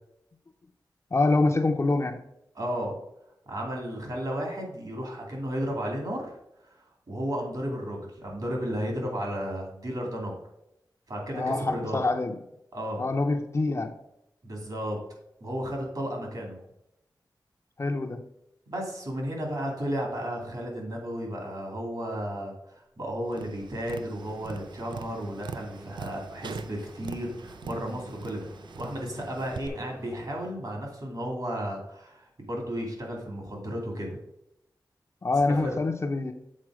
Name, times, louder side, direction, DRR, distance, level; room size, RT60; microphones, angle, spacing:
voice 1, 1.1-2.2 11.3-12.3 13.0-13.9 17.8-18.2 35.2-36.3, left 3 dB, 40° left, 6 dB, 0.6 m, -25 dB
voice 2, 2.6-3.0 3.5-6.3 6.6-6.7 7.1-10.4 11.1-12.0 12.7-13.0 14.4-15.0 15.4-16.6 18.7-28.5 28.8-34.2 35.6-35.8, equal, 60° right, 0 dB, 2.4 m, -33 dB
Tap, 23.3-29.7, right 5 dB, 90° right, 0.4 m, -43 dB
sound 1, 24.2-30.5, right 1 dB, 20° right, 0.7 m, -49 dB
7.6 x 4.2 x 4.8 m, 0.82 s
wide cardioid pair, 115°, 8 cm